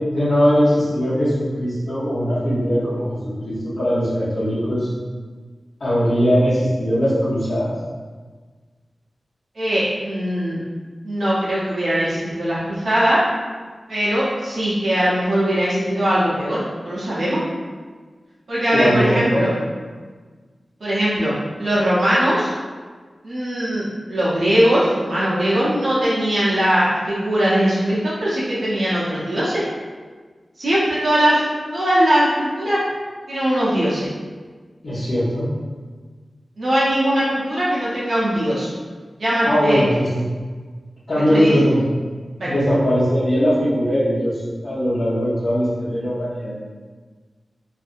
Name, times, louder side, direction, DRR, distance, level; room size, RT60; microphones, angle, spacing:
voice 1, 0.1-4.9 5.8-7.7 18.7-19.4 34.8-35.5 39.4-40.2 41.1-41.9 42.4-46.5, equal, 75° left, -15 dB, 1.0 m, -20 dB
voice 2, 9.5-10.6 11.0-13.2 13.9-17.4 18.5-19.5 20.8-21.3 21.6-22.5 23.2-29.6 30.6-31.4 31.7-32.8 33.3-34.1 36.6-38.7 39.2-39.8 41.3-41.5 42.4-42.5, equal, 75° right, -9 dB, 0.8 m, -20 dB
2.6 x 2.6 x 2.5 m, 1.5 s
cardioid pair, 50°, 0 cm